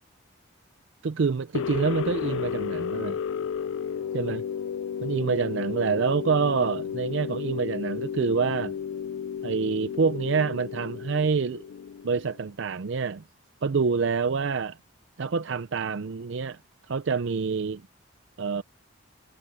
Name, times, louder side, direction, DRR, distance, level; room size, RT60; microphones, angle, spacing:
voice 1, 1.0-3.2 4.1-4.4 5.0-8.7 9.4-11.6 12.0-13.2 13.6-14.8 15.2-16.6 16.9-17.8 18.4-18.6, right 5 dB, 65° right, 0.5 m, -26 dB
sound 1, 1.5-12.4, left 7 dB, 80° left, 0.4 m, -33 dB
head